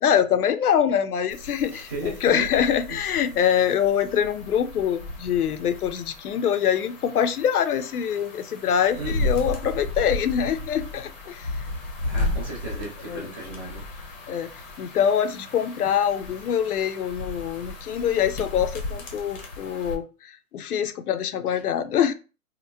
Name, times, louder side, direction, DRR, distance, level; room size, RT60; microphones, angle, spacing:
voice 1, 0.0-11.5 13.1-13.3 14.3-14.5 14.8-22.1, left 8 dB, 80° left, 0.6 m, -24 dB
sound 1, 1.3-20.0, left 2 dB, 30° left, 0.7 m, -34 dB
voice 2, 1.7-2.5 2.9-3.2 8.9-9.2 12.0-13.9 21.5-21.7, right 3 dB, 15° right, 0.6 m, -36 dB
2.9 x 2.1 x 3.2 m
hypercardioid pair, 155°, 44 cm